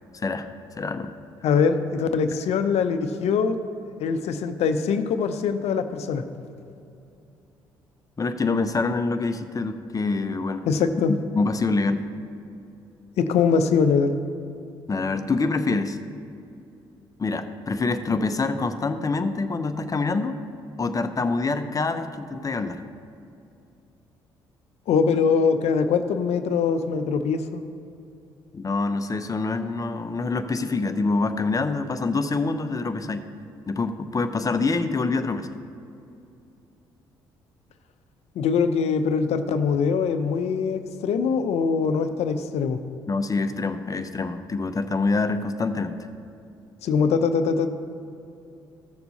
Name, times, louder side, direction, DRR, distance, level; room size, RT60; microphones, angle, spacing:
voice 1, 0.1-0.5 0.8-1.1 8.2-10.6 11.3-12.0 14.9-16.0 17.2-20.4 20.8-22.8 28.5-33.3 33.7-35.5 43.1-46.0, left 3 dB, 30° left, 9 dB, 0.7 m, -25 dB
voice 2, 1.4-3.6 4.0-6.2 10.7-11.2 13.2-14.2 24.9-27.6 38.4-42.8 46.8-47.7, left 5 dB, 60° left, 9 dB, 0.7 m, -22 dB
14.0 x 6.9 x 4.1 m, 2.6 s
hypercardioid pair, 50°, 12 cm